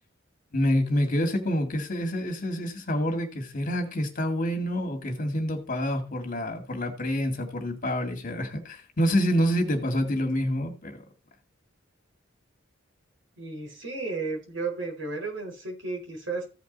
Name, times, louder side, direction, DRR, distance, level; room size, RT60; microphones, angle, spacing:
voice 1, 0.5-11.0, equal, 45° left, 2.2 m, -27 dB
voice 2, 13.4-16.4, right 3 dB, 75° right, 4.7 m, -33 dB
15.0 x 5.2 x 4.1 m
head